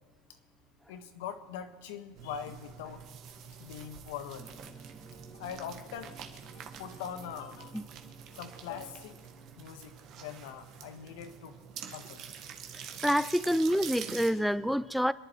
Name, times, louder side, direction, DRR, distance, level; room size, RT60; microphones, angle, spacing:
voice 1, 0.9-3.0 3.6-4.7 5.3-6.1 6.5-7.8 8.3-9.1 9.6-11.6 11.9-12.2, left 8 dB, 75° left, 1.5 m, -42 dB
sound 1, 2.1-14.3, right 8 dB, 45° right, 1.7 m, -46 dB
sound 2, 4.4-9.7, right 4 dB, 20° right, 1.2 m, -54 dB
voice 2, 12.7-15.1, equal, ahead, 0.4 m, -28 dB
27.5 x 10.5 x 4.6 m
supercardioid pair, 135°, 0 cm